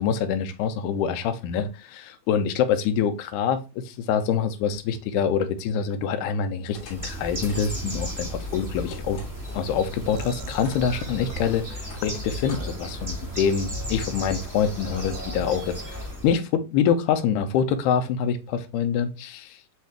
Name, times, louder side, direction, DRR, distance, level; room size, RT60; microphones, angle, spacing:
voice 1, 0.0-9.2 9.5-16.0 16.2-19.5, left 7 dB, 80° left, 8 dB, 1.8 m, -25 dB
sound 1, 6.7-9.7 10.1-13.3, left 4 dB, 55° left, 2.7 m, -46 dB
Bird, 6.7-16.4, equal, 10° right, 0.8 m, -34 dB
sound 2, 10.2-11.5 12.6-13.1 13.7-14.1 14.9-15.2, right 9 dB, 85° right, 2.3 m, -42 dB
5.8 x 2.7 x 3.2 m, 0.28 s
omnidirectional pair, 4.1 m